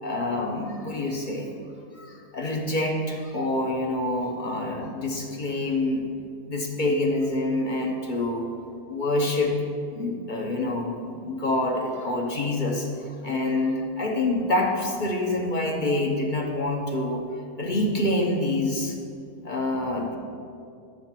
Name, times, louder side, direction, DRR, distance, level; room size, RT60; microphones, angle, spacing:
voice 1, 0.0-1.5 1.9-6.0 6.4-8.5 8.9-9.5 9.9-17.2 17.6-19.0 19.4-20.1, left 2 dB, 40° left, 0 dB, 0.8 m, -26 dB
11.5 x 3.9 x 7.4 m, 2.4 s
omnidirectional pair, 1.7 m